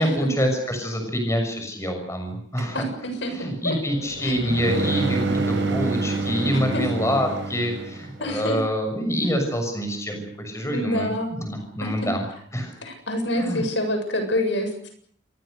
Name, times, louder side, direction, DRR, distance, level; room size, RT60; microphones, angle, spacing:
voice 1, 0.0-2.9 3.3-12.2 12.5-12.7 13.4-13.6, equal, 15° left, 4 dB, 6.5 m, -26 dB
sound 1, 2.6-8.2, right 3 dB, 65° right, 5.2 m, -28 dB
voice 2, 3.2-3.8 4.2-4.3 6.7-6.8 8.2-8.6 10.7-11.4 11.8-11.9 12.8-14.9, left 1 dB, 65° left, 6 dB, 7.5 m, -27 dB
28.5 x 23.0 x 6.7 m, 0.63 s
head